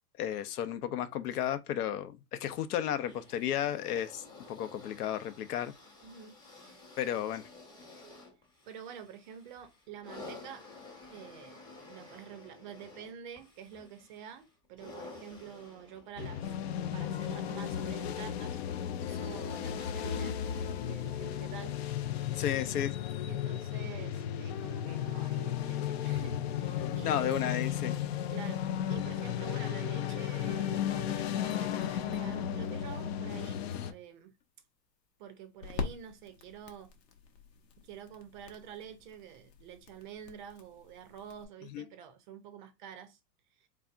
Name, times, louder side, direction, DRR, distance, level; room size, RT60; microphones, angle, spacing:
voice 1, 0.2-5.7 7.0-7.5 22.4-22.9 27.0-27.9 41.7-41.8, left 10 dB, 65° left, 0.8 m, -33 dB
sound 1, 3.0-18.5 19.3-19.4, left 3 dB, 10° left, 0.8 m, -52 dB
voice 2, 6.0-6.8 8.7-10.7 11.1-16.6 16.9-21.8 23.3-27.7 28.3-34.3 35.2-36.9 37.8-43.2 43.6-43.7, right 8 dB, 30° right, 0.5 m, -48 dB
sound 2, 16.2-33.9, left 10 dB, 45° left, 0.4 m, -34 dB
sound 3, 33.5-41.4, left 5 dB, 85° left, 1.2 m, -45 dB
4.1 x 3.6 x 2.5 m
hypercardioid pair, 145°, 49 cm